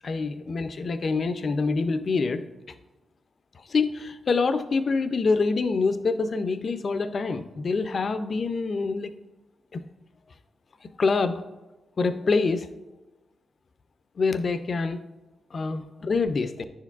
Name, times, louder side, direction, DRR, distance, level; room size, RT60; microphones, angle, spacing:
voice 1, 0.0-2.4 3.7-9.1 9.7-9.8 11.0-11.4 12.0-12.7 14.2-15.0 15.5-16.5, left 4 dB, 55° left, 10 dB, 0.4 m, -25 dB
9.8 x 4.5 x 2.4 m, 1.1 s
cardioid pair, 70°, 0 cm